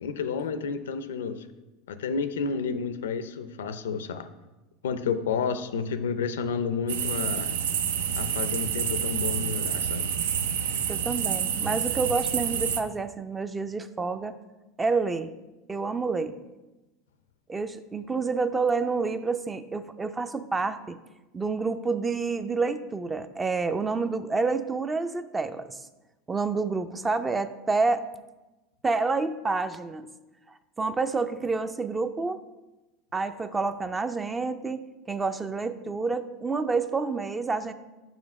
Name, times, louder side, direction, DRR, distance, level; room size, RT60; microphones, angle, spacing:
voice 1, 0.0-1.5 1.9-4.3 4.8-7.5 8.2-10.1, left 5 dB, 90° left, 11 dB, 0.5 m, -30 dB
sound 1, 6.9-12.8, right 8 dB, 80° right, 0.4 m, -28 dB
voice 2, 10.9-14.4 14.8-15.3 15.7-16.4 17.5-21.0 21.3-25.8 26.3-28.0 28.8-30.1 30.5-32.4 33.1-37.7, right 4 dB, 20° right, 11 dB, 0.4 m, -28 dB
5.4 x 5.0 x 5.2 m, 1.1 s
hypercardioid pair, 100°, 0 cm